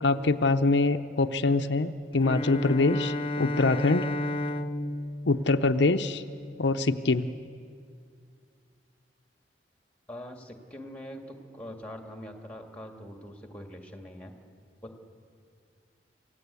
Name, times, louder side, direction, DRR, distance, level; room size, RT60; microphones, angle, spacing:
voice 1, 0.0-4.1 5.3-6.2 6.6-7.3, left 3 dB, 75° left, 7 dB, 0.7 m, -24 dB
Bowed string instrument, 2.1-6.5, left 1 dB, 30° left, 0.7 m, -33 dB
voice 2, 10.1-14.4 14.8-15.0, equal, 5° left, 4 dB, 2.0 m, -43 dB
28.0 x 16.0 x 8.3 m, 2.2 s
head